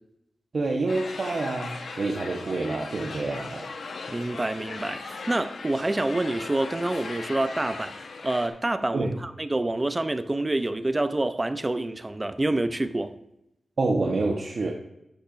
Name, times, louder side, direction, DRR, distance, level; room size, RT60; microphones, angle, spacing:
voice 1, 0.5-3.7 8.9-9.2 13.8-14.7, right 3 dB, 60° right, 1.1 m, -27 dB
sound 1, 0.9-8.5, left 4 dB, 80° left, 1.1 m, -38 dB
voice 2, 4.1-7.9 8.2-13.1, right 2 dB, 25° right, 0.6 m, -27 dB
12.0 x 8.6 x 2.6 m
wide cardioid pair, 90°, 0 cm